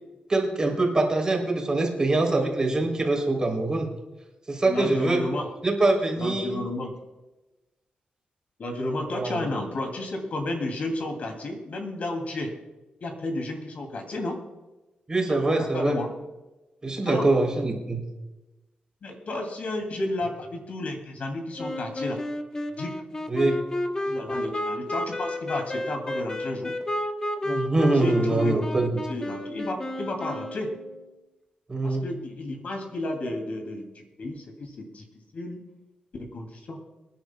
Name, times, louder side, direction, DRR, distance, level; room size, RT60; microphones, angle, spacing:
voice 1, 0.3-3.9 4.5-6.6 9.1-9.4 15.1-16.0 16.8-18.0 23.3-23.6 27.4-29.0 31.7-32.1, right 2 dB, 25° right, 0 dB, 3.4 m, -24 dB
voice 2, 4.7-5.4 6.2-7.0 8.6-12.5 13.0-14.4 15.3-16.1 17.1-17.3 19.0-22.2 22.8-22.9 24.1-26.7 27.9-28.6 28.9-30.7 31.8-35.0 35.3-35.6 36.2-36.8, left 2 dB, 55° left, 2 dB, 2.7 m, -32 dB
Wind instrument woodwind instrument, 21.6-31.0, left 1 dB, 25° left, 1.1 m, -31 dB
26.0 x 10.5 x 2.3 m, 1.1 s
wide cardioid pair, 120°, 3 cm